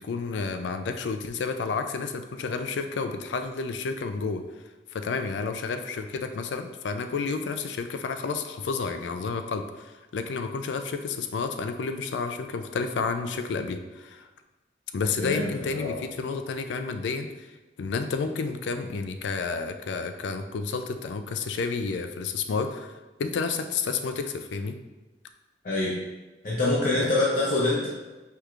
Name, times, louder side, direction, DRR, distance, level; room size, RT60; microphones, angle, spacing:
voice 1, 0.0-4.4 4.9-14.3 14.9-17.5 17.8-24.8, left 4 dB, 85° left, 7 dB, 0.4 m, -30 dB
voice 2, 15.2-16.0 25.6-25.9 26.4-27.9, left 2 dB, 50° left, -7 dB, 0.7 m, -25 dB
4.6 x 3.3 x 2.4 m, 1.2 s
head